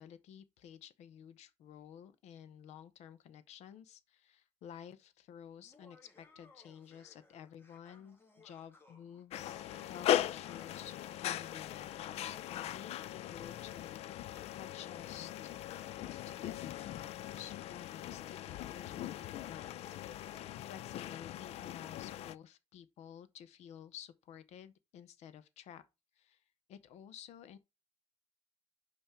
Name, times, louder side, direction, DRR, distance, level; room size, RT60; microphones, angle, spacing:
voice 1, 0.0-15.5 16.3-19.9 20.7-25.8 26.2-26.4 26.7-27.6, left 9 dB, 85° left, 0.8 m, -52 dB
Laughter, 5.6-11.2, left 3 dB, 20° left, 1.4 m, -63 dB
sound 1, 9.3-22.3, left 12 dB, 70° left, 0.4 m, -39 dB
5.7 x 5.3 x 4.4 m
cardioid pair, 170°, 11 cm